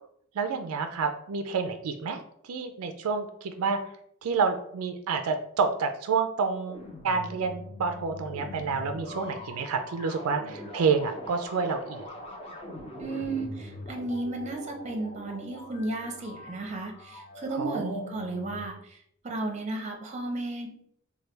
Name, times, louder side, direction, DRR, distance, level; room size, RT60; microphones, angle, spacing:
voice 1, 0.3-3.8 4.2-12.1 17.6-18.0, right 5 dB, 75° right, 7 dB, 0.4 m, -29 dB
sound 1, 6.6-18.7, left 1 dB, 25° left, 0.6 m, -42 dB
voice 2, 13.0-19.0 19.2-20.7, right 2 dB, 30° right, 2 dB, 0.6 m, -34 dB
3.2 x 2.2 x 4.3 m, 0.69 s
head